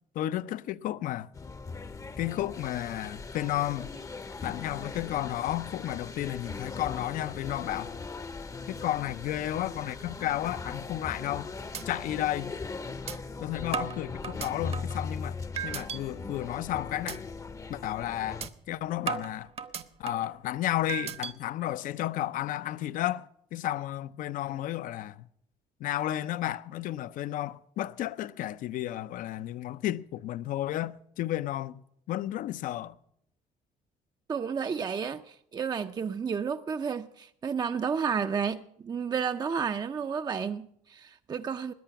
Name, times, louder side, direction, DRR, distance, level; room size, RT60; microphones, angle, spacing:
voice 1, 0.1-1.3 2.2-3.9 4.4-8.0 8.7-11.5 11.9-12.5 13.4-15.4 15.6-17.2 17.7-19.5 20.0-25.3 25.8-31.8 32.1-33.0, left 13 dB, 65° left, 0.6 m, -32 dB
sound 1, 1.3-18.5, left 4 dB, 20° left, 0.7 m, -39 dB
sound 2, 11.2-11.4 11.7-11.8 12.3-12.4 13.1-13.2 13.7-15.0 15.6-16.0 16.4-16.7 17.1-17.2 17.6-17.8 18.4-18.5 19.1-20.3 20.9-21.3, right 7 dB, 45° right, 0.9 m, -35 dB
voice 2, 34.3-41.7, right 6 dB, 30° right, 0.5 m, -31 dB
18.0 x 10.0 x 5.8 m
cardioid pair, 105°, 15 cm